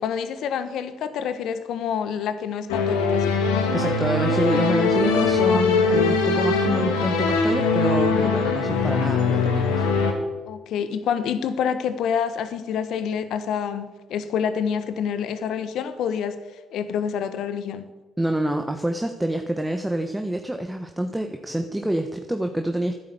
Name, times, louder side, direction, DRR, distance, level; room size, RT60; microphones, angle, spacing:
voice 1, 0.0-3.4 10.4-16.4 16.7-17.9, left 7 dB, 65° left, 12 dB, 1.3 m, -27 dB
sound 1, 2.7-10.1, left 4 dB, 85° left, 2.1 m, -21 dB
voice 2, 3.7-9.9 18.2-22.9, right 1 dB, 10° right, 5 dB, 1.3 m, -27 dB
12.5 x 10.0 x 8.4 m, 1.2 s
hypercardioid pair, 50°, 0 cm